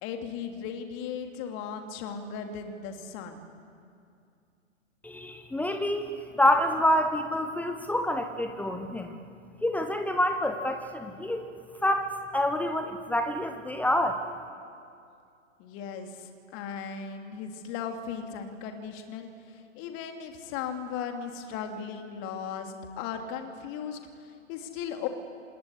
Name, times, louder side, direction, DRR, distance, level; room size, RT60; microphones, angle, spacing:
voice 1, 0.0-3.4 15.6-25.1, left 7 dB, 30° left, 5 dB, 3.0 m, -37 dB
voice 2, 5.0-9.2 9.6-11.5 11.8-14.2, left 1 dB, 5° left, 7 dB, 1.1 m, -27 dB
27.5 x 19.5 x 9.9 m, 2.4 s
figure-of-eight pair, 110°, 38 cm